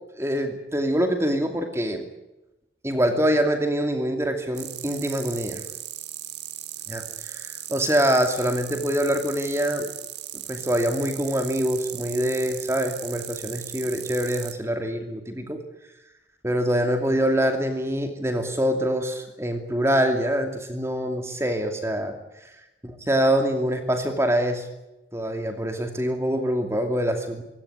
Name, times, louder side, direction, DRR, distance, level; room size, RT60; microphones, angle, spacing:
voice 1, 0.2-2.0 2.8-5.6 6.9-9.9 10.5-15.6 16.4-22.1 22.4-22.5 22.8-24.7 25.1-27.4, equal, 15° right, 5 dB, 2.6 m, -25 dB
sound 1, 4.5-14.5, right 12 dB, 85° right, 2.2 m, -37 dB
25.5 x 17.0 x 9.6 m, 0.97 s
head